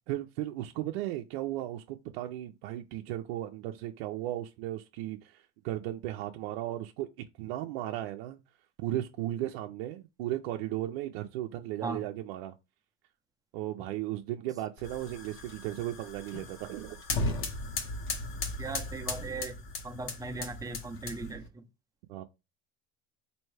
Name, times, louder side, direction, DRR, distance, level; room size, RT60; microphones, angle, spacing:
voice 1, 0.1-7.1 7.4-8.4 8.8-12.5 13.5-17.0 22.1-22.2, right 14 dB, 80° right, 0.5 m, -36 dB
sound 1, 14.8-21.5, left 3 dB, 45° left, 0.9 m, -37 dB
voice 2, 18.6-19.6 19.8-21.6, right 3 dB, 10° right, 0.6 m, -38 dB
4.3 x 2.7 x 3.2 m
supercardioid pair, 130°, 30 cm